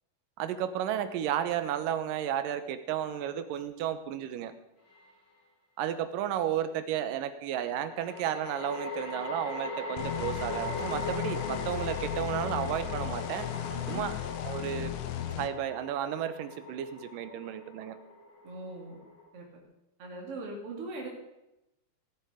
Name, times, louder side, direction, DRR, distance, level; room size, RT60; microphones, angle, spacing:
voice 1, 0.4-4.5 5.8-13.5 13.9-14.2 14.4-14.9 15.4-18.0, right 10 dB, 85° right, 10 dB, 2.5 m, -33 dB
sound 1, 4.9-5.0 7.9-19.3, left 2 dB, 30° left, 5.6 m, -40 dB
sound 2, 10.0-15.5, left 13 dB, 85° left, 1.5 m, -36 dB
voice 2, 13.7-14.0 18.4-19.0 19.3-19.4 20.0-21.1, right 2 dB, 45° right, -2 dB, 3.3 m, -40 dB
17.5 x 8.0 x 5.0 m, 0.92 s
omnidirectional pair, 3.8 m